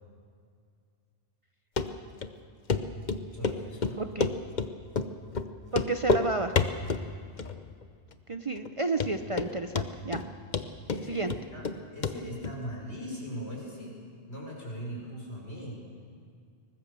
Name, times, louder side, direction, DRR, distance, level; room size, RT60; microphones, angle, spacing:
Run, 1.8-1.9 2.2-2.3 2.7-2.8 3.1-4.7 5.0-5.1 5.4-5.5 5.7-6.3 6.6-7.1 7.4-7.8 8.1-8.2 8.7-8.8 9.0-9.5 9.8-10.3 10.5-11.8 12.0-12.2 12.4-12.5, left 4 dB, 45° left, 1.0 m, -28 dB
voice 1, 3.3-4.0 10.9-11.7 11.9-13.9 14.3-15.8, equal, 70° left, -2 dB, 6.0 m, -39 dB
voice 2, 4.0-4.3 5.7-6.5 8.3-10.2 11.1-11.3, right 3 dB, 35° right, 7 dB, 0.7 m, -31 dB
23.5 x 20.0 x 6.9 m, 2.3 s
omnidirectional pair, 1.1 m